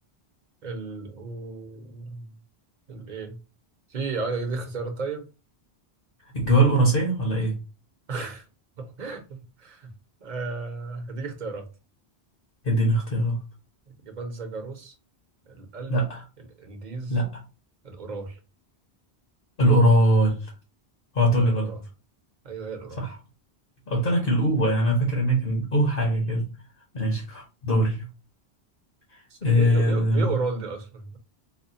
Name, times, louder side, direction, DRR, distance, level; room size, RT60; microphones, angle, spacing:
voice 1, 0.6-2.3 2.9-3.4 3.9-5.3 8.1-8.4 8.8-9.9 10.2-11.7 13.9-14.9 15.5-16.0 16.4-17.1 17.8-18.4 21.4-21.8 22.4-23.1 29.3-31.2, right 4 dB, 45° right, 0.9 m, -34 dB
voice 2, 6.4-7.6 12.6-13.4 15.9-16.2 17.1-17.3 19.6-20.4 21.1-21.7 23.0-23.1 23.9-26.5 26.9-28.0 29.4-30.3, equal, 55° left, 1.3 m, -21 dB
4.2 x 2.3 x 2.7 m
omnidirectional pair, 1.1 m